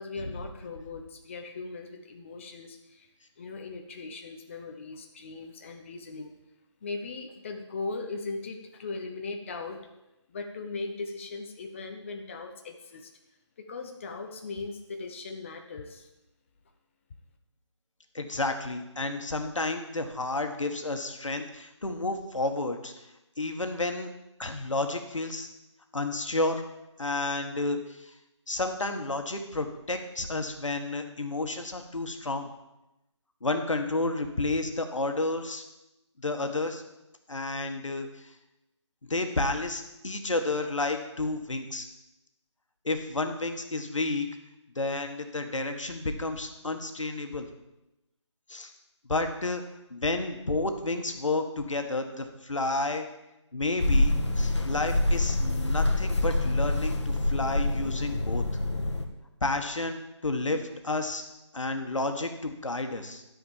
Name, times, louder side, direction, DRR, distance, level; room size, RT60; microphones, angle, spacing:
voice 1, 0.0-3.1 3.4-6.3 6.8-9.8 10.3-13.1 13.6-16.1, left 3 dB, 25° left, 4 dB, 0.7 m, -39 dB
voice 2, 18.1-22.9 23.4-24.1 24.4-25.5 25.9-26.6 27.0-28.1 28.5-32.5 33.4-35.6 36.2-36.8 37.3-38.3 39.1-41.9 42.8-44.3 44.8-47.5 48.5-48.7 49.1-49.6 49.9-53.1 53.5-58.4 59.4-61.2 61.5-63.2, left 2 dB, 90° left, 6 dB, 1.7 m, -31 dB
sound 1, 53.8-59.1, left 1 dB, 70° left, 1.5 m, -26 dB
12.5 x 5.2 x 7.3 m, 0.95 s
figure-of-eight pair, 165°, 16 cm